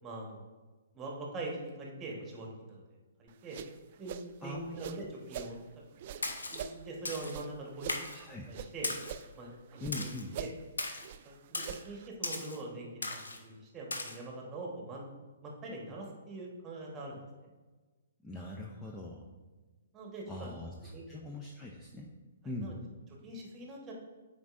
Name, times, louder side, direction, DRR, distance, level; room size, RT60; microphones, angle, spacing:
voice 1, 0.0-0.4 0.9-2.8 3.2-3.6 4.0-5.6 6.5-7.9 8.2-8.9 9.3-10.1 10.4-10.5 11.2-15.0 15.4-17.5 19.9-20.6 20.9-21.0 22.4-22.7 23.2-23.9, right 2 dB, 20° right, -1 dB, 1.3 m, -43 dB
sound 1, 3.3-5.6 6.0-8.7 9.0-10.0 10.3-12.1, right 8 dB, 45° right, 0.3 m, -44 dB
voice 2, 4.4-5.0 8.1-8.5 9.8-10.4 18.2-19.2 20.3-22.1 22.4-22.8, left 2 dB, 10° left, -2 dB, 0.6 m, -42 dB
Splash splatter, 6.2-6.6 7.1-7.4 7.9-8.2 8.8-9.2 9.9-10.2 10.8-11.1 11.5-11.8 12.2-12.6 13.0-13.4 13.9-14.2, left 2 dB, 75° left, 0.7 m, -37 dB
9.3 x 4.2 x 2.6 m, 1.3 s
figure-of-eight pair, 125°, 0 cm